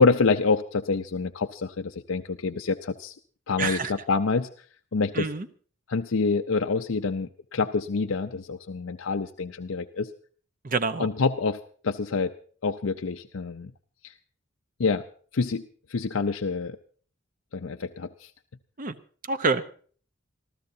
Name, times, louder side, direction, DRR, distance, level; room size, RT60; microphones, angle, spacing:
voice 1, 0.0-3.1 3.5-4.5 4.9-5.3 5.9-10.1 11.0-11.6 11.8-12.3 12.6-13.7 14.0-14.1 14.8-15.0 15.3-15.6 15.9-16.8 17.5-18.3, left 4 dB, 80° left, 6 dB, 0.6 m, -26 dB
voice 2, 3.6-3.9 5.1-5.5 10.6-11.1 18.8-18.9 19.3-19.6, right 4 dB, 45° right, 12 dB, 0.9 m, -27 dB
26.5 x 14.5 x 2.7 m, 0.44 s
head